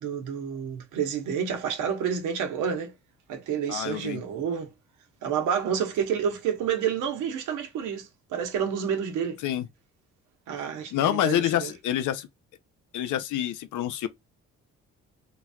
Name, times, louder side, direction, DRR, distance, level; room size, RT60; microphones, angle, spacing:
voice 1, 0.0-2.9 3.3-4.7 5.2-9.4 10.5-11.7, right 7 dB, 90° right, 1.1 m, -29 dB
voice 2, 3.7-4.2 9.4-9.7 10.9-12.3 12.9-14.1, left 11 dB, 80° left, 0.6 m, -27 dB
3.9 x 2.8 x 2.3 m
cardioid pair, 90°, 30 cm